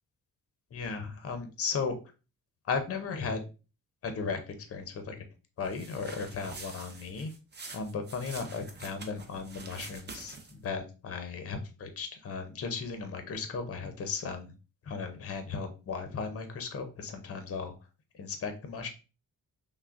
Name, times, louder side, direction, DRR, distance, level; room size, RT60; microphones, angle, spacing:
voice 1, 0.7-1.9 2.6-3.4 4.0-5.2 5.6-7.3 7.7-14.5 14.9-17.7 18.1-18.9, left 5 dB, 40° left, 7 dB, 0.6 m, -36 dB
sound 1, 5.6-10.7, right 3 dB, 30° right, 0.5 m, -46 dB
5.8 x 2.1 x 2.4 m, 0.32 s
wide cardioid pair, 165°, 38 cm